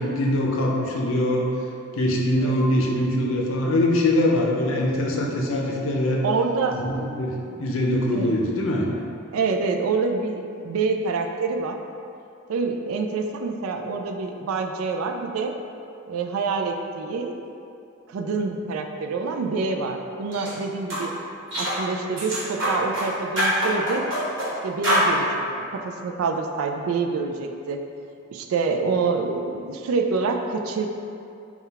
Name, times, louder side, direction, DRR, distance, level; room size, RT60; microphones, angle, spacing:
voice 1, 0.0-1.5 1.9-6.2 6.7-8.9, left 1 dB, 75° left, -1 dB, 0.5 m, -23 dB
voice 2, 6.2-6.8 8.1-8.4 9.3-11.8 12.5-15.5 16.1-17.4 18.1-21.1 21.5-24.1 24.6-27.8 28.3-30.9, right 4 dB, 90° right, 4 dB, 0.3 m, -26 dB
sound 1, 20.3-20.5 20.9-21.0 21.5-21.8 22.2-23.1 23.4-24.5 24.8-25.1, equal, 60° right, 1.2 m, -24 dB
3.8 x 2.3 x 4.1 m, 2.6 s
head